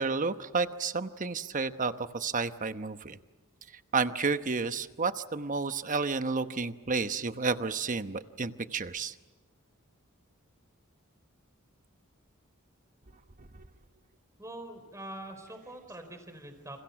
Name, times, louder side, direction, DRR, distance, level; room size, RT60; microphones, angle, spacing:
voice 1, 0.0-3.2 3.9-9.1 13.4-13.5, right 4 dB, 40° right, 10 dB, 1.0 m, -31 dB
voice 2, 14.4-16.8, right 1 dB, 15° right, 7 dB, 4.4 m, -44 dB
30.0 x 28.0 x 6.0 m, 1.2 s
head